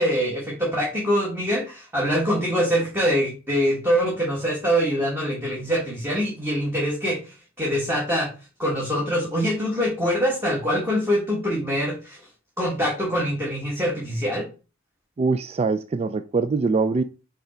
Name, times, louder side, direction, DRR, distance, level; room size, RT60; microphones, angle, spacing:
voice 1, 0.0-8.3 8.6-12.2 12.6-14.5, equal, 10° right, -4 dB, 1.6 m, -24 dB
voice 2, 15.2-17.0, right 4 dB, 30° right, 10 dB, 0.3 m, -23 dB
5.6 x 3.8 x 4.4 m, 0.33 s
head